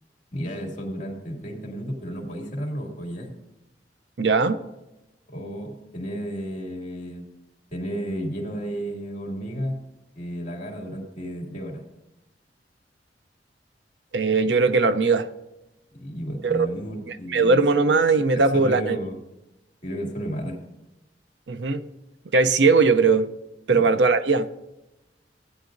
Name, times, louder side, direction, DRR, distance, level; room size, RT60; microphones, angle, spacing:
voice 1, 0.3-3.3 5.3-7.3 7.7-9.8 10.2-11.8 15.9-17.6 18.3-19.2 19.8-20.6 23.7-23.8, equal, 45° left, 2.4 m, -33 dB
voice 2, 4.2-4.6 14.1-15.3 16.4-16.7 17.3-19.0 21.5-21.9 22.3-23.3 23.7-24.5, right 4 dB, 75° right, 0.6 m, -19 dB
16.0 x 10.0 x 2.6 m
head